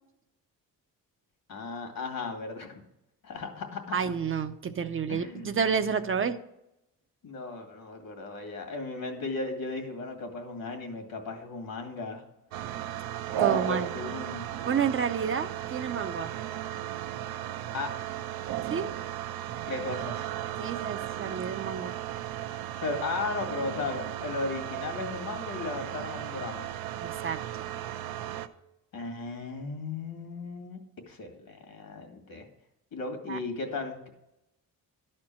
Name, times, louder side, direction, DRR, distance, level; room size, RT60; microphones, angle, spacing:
voice 1, 1.5-2.8 3.2-4.0 5.1-5.6 7.2-12.2 13.4-14.5 17.7-17.9 19.7-20.3 22.8-26.7 28.9-30.8 31.1-32.5 32.9-34.1, left 3 dB, 70° left, 5 dB, 2.2 m, -36 dB
voice 2, 3.9-6.4 13.4-13.9 14.7-16.3 18.7-18.9 20.6-21.9 27.0-27.4 33.3-33.4, right 6 dB, 35° right, 8 dB, 0.6 m, -29 dB
sound 1, 12.5-28.5, right 12 dB, 85° right, 0.7 m, -35 dB
12.0 x 4.4 x 7.6 m, 0.86 s
cardioid pair, 130°, 36 cm